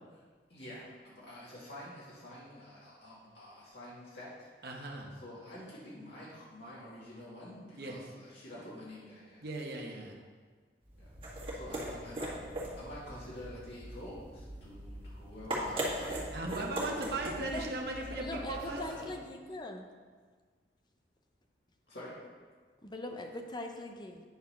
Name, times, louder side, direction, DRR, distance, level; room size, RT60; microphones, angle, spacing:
voice 1, 0.5-4.5 5.1-9.4 10.9-11.1 11.5-12.3 12.8-16.2 16.6-17.0 18.3-19.1 21.9-22.1, left 1 dB, 70° left, -8 dB, 2.3 m, -48 dB
voice 2, 4.6-5.1 7.8-8.0 9.4-10.2 16.3-18.8, right 2 dB, 60° right, 0 dB, 1.1 m, -38 dB
sound 1, 10.9-19.1, right 1 dB, 30° right, 2.0 m, -40 dB
voice 3, 17.4-17.7 18.1-19.9 22.8-24.2, left 1 dB, 25° left, 4 dB, 0.7 m, -41 dB
9.5 x 4.3 x 5.7 m, 1.5 s
head